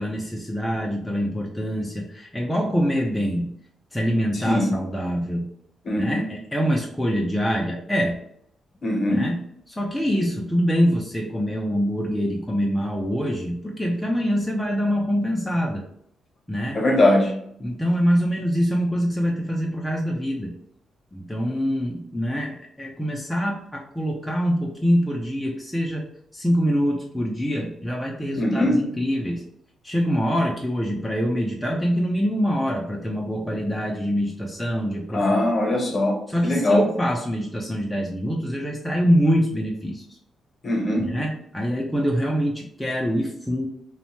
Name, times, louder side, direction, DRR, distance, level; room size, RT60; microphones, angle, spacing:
voice 1, 0.0-3.5 3.9-5.5 6.0-8.2 9.1-9.4 9.7-15.8 16.5-16.8 17.6-20.5 21.1-26.1 26.3-29.4 29.8-35.3 36.3-40.2 41.0-43.7, equal, 5° left, -2 dB, 0.4 m, -24 dB
voice 2, 4.4-4.7 5.8-6.2 8.8-9.2 16.7-17.4 28.4-28.8 35.1-36.8 40.6-41.1, left 1 dB, 40° left, 1 dB, 0.7 m, -21 dB
2.6 x 2.1 x 3.0 m, 0.70 s
cardioid pair, 115°, 0 cm